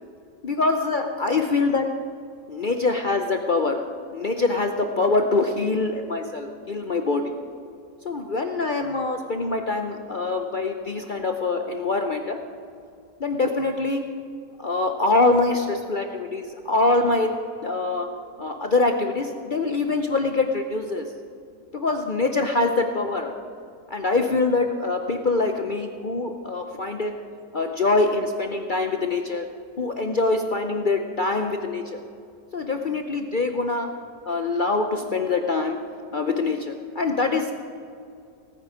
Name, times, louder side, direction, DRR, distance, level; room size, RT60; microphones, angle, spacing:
voice 1, 0.4-1.9 2.5-3.8 4.1-7.2 8.0-12.4 13.2-14.0 14.6-17.3 17.6-18.1 18.4-21.1 21.7-23.3 23.9-27.1 27.5-29.5 29.8-32.0 32.5-33.9 34.3-35.8 36.1-37.5, left 3 dB, 70° left, 5 dB, 0.4 m, -24 dB
18.0 x 9.5 x 5.0 m, 2.4 s
omnidirectional pair, 1.9 m